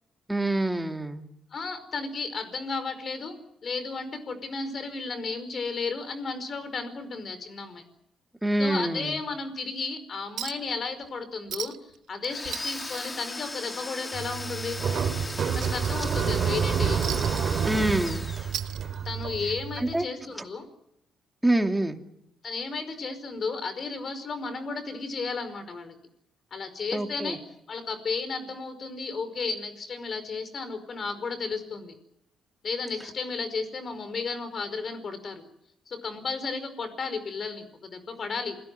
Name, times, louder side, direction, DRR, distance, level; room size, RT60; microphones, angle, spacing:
voice 1, 0.3-1.3 8.4-9.2 17.6-18.3 19.8-20.1 21.4-22.0 26.9-27.4, right 1 dB, 10° right, 4 dB, 2.6 m, -26 dB
voice 2, 1.5-3.4 3.6-7.8 8.6-11.7 12.1-14.8 15.5-17.2 19.0-20.6 22.4-26.0 26.5-27.4 27.7-31.9 32.6-35.4 35.9-38.6, left 4 dB, 45° left, 11 dB, 5.0 m, -33 dB
Chink clink, 10.4-10.7 11.0-11.1 11.5-12.0 12.3-14.0 14.3-14.5 14.9-16.4 17.0-18.1 18.4-19.3 20.4-20.5, right 11 dB, 80° right, 1.0 m, -38 dB
Domestic sounds home sounds, 12.2-19.0, left 2 dB, 20° left, 1.7 m, -38 dB
sound 1, 14.1-20.0, right 7 dB, 55° right, 3.1 m, -28 dB
27.5 x 17.5 x 9.4 m, 0.81 s
cardioid pair, 90°, 0 cm